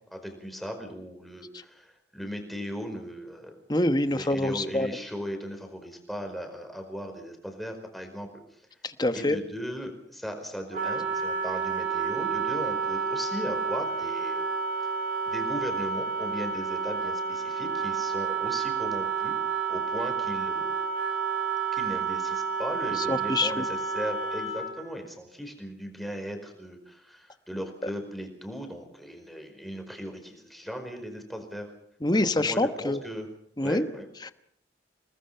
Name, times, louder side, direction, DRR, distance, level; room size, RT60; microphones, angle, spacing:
voice 1, 0.1-3.6 4.1-8.6 9.1-14.5 14.8-14.9 15.3-19.3 19.7-20.8 21.7-31.7 32.1-33.3 33.6-34.1, equal, ahead, 4 dB, 4.8 m, -37 dB
voice 2, 3.7-5.0 8.8-9.4 23.0-23.7 27.8-27.9 32.0-33.0 33.6-33.9 34.2-34.3, left 1 dB, 25° left, 11 dB, 1.1 m, -26 dB
Wind instrument woodwind instrument, 10.7-24.8, right 5 dB, 50° right, 4.5 m, -30 dB
28.5 x 20.0 x 5.7 m, 0.70 s
head